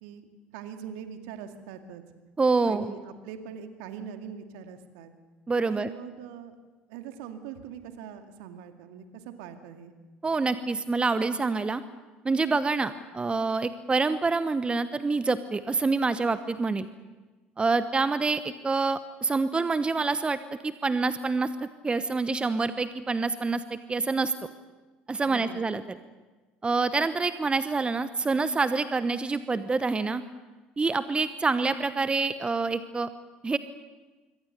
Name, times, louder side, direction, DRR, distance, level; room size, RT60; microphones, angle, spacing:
voice 1, 0.0-2.0 2.6-5.1 5.7-6.6 6.9-9.9 25.2-25.7, right 8 dB, 65° right, 7 dB, 2.2 m, -42 dB
voice 2, 2.4-2.9 5.5-5.9 10.2-11.8 12.2-16.9 17.6-21.5 21.8-24.3 25.1-26.0 26.6-30.2 30.8-33.1 33.4-33.6, right 3 dB, 20° right, 13 dB, 1.0 m, -26 dB
26.0 x 23.5 x 6.8 m, 1.3 s
figure-of-eight pair, 60°, 5 cm